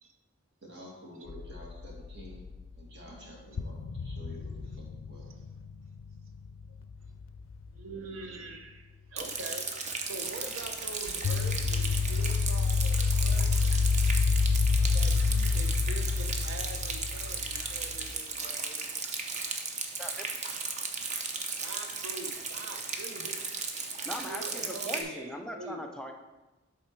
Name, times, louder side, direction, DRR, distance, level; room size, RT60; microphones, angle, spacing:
voice 1, 0.6-2.4 2.8-5.3 24.5-25.6, equal, 60° right, -3 dB, 1.8 m, -50 dB
sound 1, 1.3-2.8 3.1-3.2 3.6-7.9 11.1-18.1, left 4 dB, 80° left, 0.4 m, -29 dB
voice 2, 7.7-9.7 10.0-13.7 14.9-18.8 21.6-23.4 24.2-25.9, right 2 dB, 80° right, 4 dB, 0.7 m, -44 dB
Rain, 9.2-25.0, right 4 dB, 35° right, 0.7 m, -36 dB
voice 3, 20.0-20.5 24.0-26.1, equal, 5° left, 3 dB, 0.5 m, -40 dB
7.6 x 3.7 x 4.5 m, 1.1 s
head